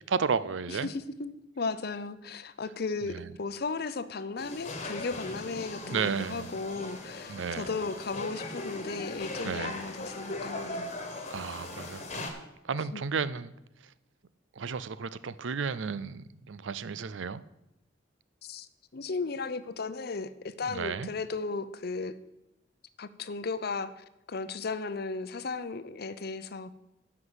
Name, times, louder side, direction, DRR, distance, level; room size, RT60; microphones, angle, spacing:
voice 1, 0.1-0.9 3.1-3.3 5.8-6.5 7.3-7.7 9.4-9.8 11.3-12.3 12.6-13.5 14.6-17.4 20.7-21.1, right 5 dB, 90° right, 0.5 m, -33 dB
voice 2, 0.7-10.9 12.9-13.0 18.4-22.1 23.0-26.7, left 4 dB, 55° left, 0.6 m, -35 dB
sound 1, 4.4-12.3, left 2 dB, 40° left, 1.6 m, -39 dB
10.5 x 5.9 x 8.0 m
head